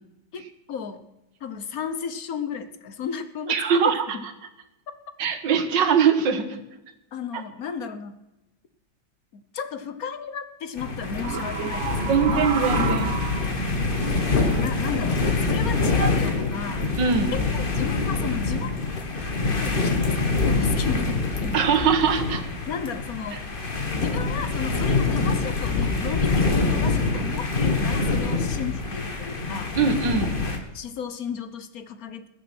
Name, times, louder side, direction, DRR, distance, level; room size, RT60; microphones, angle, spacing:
voice 1, 0.3-1.1 1.4-4.3 7.1-8.2 9.3-13.2 14.6-16.9 17.3-18.7 19.2-19.3 19.6-21.6 22.7-23.5 23.9-29.7 30.7-32.3, left 6 dB, 60° left, 11 dB, 1.3 m, -34 dB
voice 2, 3.5-4.0 5.2-6.6 7.3-7.4 12.1-13.1 17.0-17.3 21.5-22.4 29.8-30.3, right 6 dB, 80° right, 9 dB, 2.0 m, -22 dB
sound 1, 10.8-30.6, left 3 dB, 30° left, 1.6 m, -25 dB
sound 2, 11.2-15.0 15.9-16.3 17.2-17.6, right 8 dB, 60° right, 0.8 m, -32 dB
20.0 x 7.4 x 6.0 m, 0.97 s
omnidirectional pair, 1.9 m